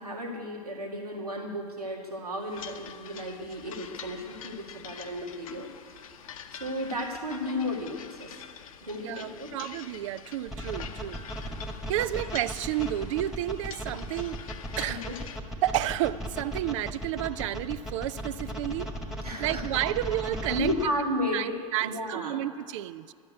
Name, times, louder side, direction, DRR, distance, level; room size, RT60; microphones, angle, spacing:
voice 1, 0.0-6.0 6.5-8.4 8.8-9.5 14.9-15.2 19.2-19.6 20.5-21.5 21.8-22.4, equal, 80° right, 0 dB, 2.0 m, -33 dB
sound 1, 2.5-15.4, left 8 dB, 65° left, 0.8 m, -46 dB
voice 2, 9.0-11.2 11.9-15.3 15.6-18.9 19.4-20.7 21.3-23.1, right 13 dB, 55° right, 17 dB, 0.5 m, -31 dB
sound 2, 10.5-20.8, equal, ahead, 1.6 m, -36 dB
12.0 x 8.5 x 9.1 m, 2.2 s
figure-of-eight pair, 80°, 19 cm